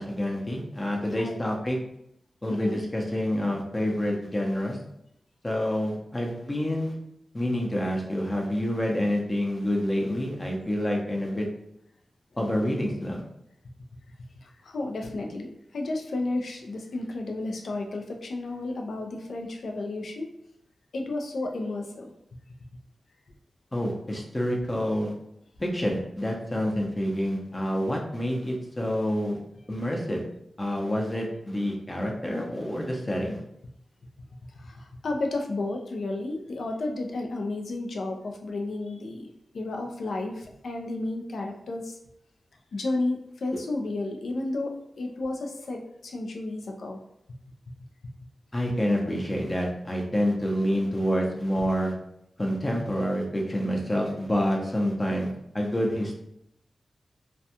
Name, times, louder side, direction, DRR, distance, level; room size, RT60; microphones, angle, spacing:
voice 1, 0.0-1.8 2.4-4.8 5.4-6.9 7.3-11.5 12.4-13.2 23.7-25.1 25.6-29.4 29.7-30.2 30.6-33.4 48.5-51.9 52.4-55.3 55.5-56.2, equal, 25° left, -1 dB, 0.6 m, -27 dB
voice 2, 14.4-20.3 20.9-22.1 34.6-39.3 39.5-42.0 42.7-44.7 45.0-47.0, left 2 dB, 75° left, 3 dB, 0.4 m, -32 dB
2.3 x 2.2 x 2.8 m, 0.79 s
cardioid pair, 65°, 0 cm